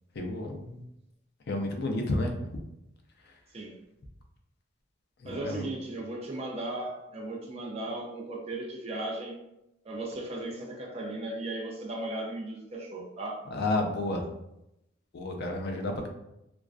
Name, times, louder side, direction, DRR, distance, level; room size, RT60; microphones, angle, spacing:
voice 1, 0.2-0.8 1.5-2.3 5.2-5.7 13.5-14.2 15.1-16.1, left 2 dB, 50° left, 3 dB, 0.4 m, -31 dB
voice 2, 5.3-9.4 9.9-13.5, right 2 dB, 30° right, -1 dB, 0.4 m, -36 dB
2.4 x 2.2 x 2.3 m, 0.85 s
head